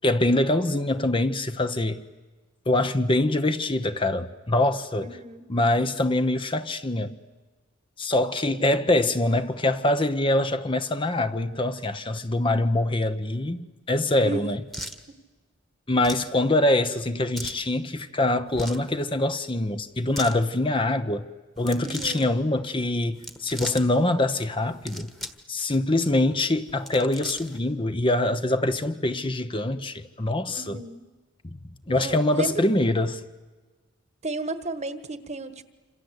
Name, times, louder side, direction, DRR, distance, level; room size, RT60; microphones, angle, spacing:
voice 1, 0.0-2.0 2.7-5.2 5.5-7.2 8.0-13.6 13.9-14.6 15.9-21.2 21.6-25.1 25.5-30.8 31.9-33.2, left 1 dB, 25° left, 0.9 m, -24 dB
voice 2, 5.0-5.5 8.4-8.8 14.2-14.5 21.8-22.3 30.5-31.1 31.9-32.5 34.2-35.6, right 2 dB, 35° right, 1.4 m, -34 dB
sound 1, 14.7-15.0 16.0-16.3 17.3-17.6 18.5-18.9 20.0-20.4 21.6-22.3 23.1-23.8 24.7-25.4 25.7-25.8 26.7-27.6, equal, ahead, 1.4 m, -37 dB
27.5 x 27.0 x 8.2 m
head